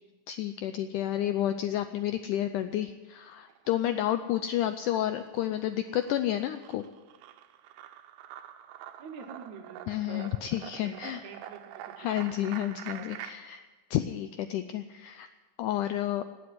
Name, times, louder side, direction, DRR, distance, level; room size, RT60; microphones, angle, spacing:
voice 1, 0.3-6.9 9.9-11.2 12.0-13.6 13.9-15.3 15.6-16.2, left 12 dB, 85° left, 9 dB, 1.8 m, -30 dB
sound 1, 3.3-4.2 4.5-13.3, right 11 dB, 90° right, 2.7 m, -46 dB
voice 2, 9.0-10.3 10.8-12.2 12.9-13.4, right 6 dB, 65° right, 4 dB, 2.1 m, -47 dB
18.5 x 7.9 x 9.6 m, 1.3 s
omnidirectional pair, 4.2 m